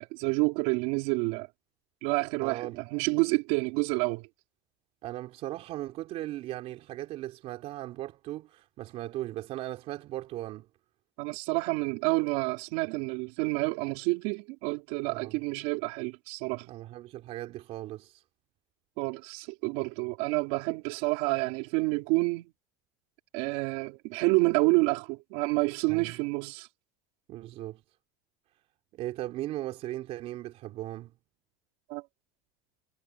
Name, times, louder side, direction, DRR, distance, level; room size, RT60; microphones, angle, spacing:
voice 1, 0.0-1.5 2.0-4.3 11.2-16.7 19.0-22.5 23.3-26.7 31.9-32.1, right 26 dB, 70° right, 4.2 m, -29 dB
voice 2, 2.4-2.8 5.0-10.7 15.0-15.3 16.7-18.2 25.9-26.2 27.3-27.8 28.9-31.1, right 15 dB, 50° right, 3.2 m, -38 dB
supercardioid pair, 135°, 13 cm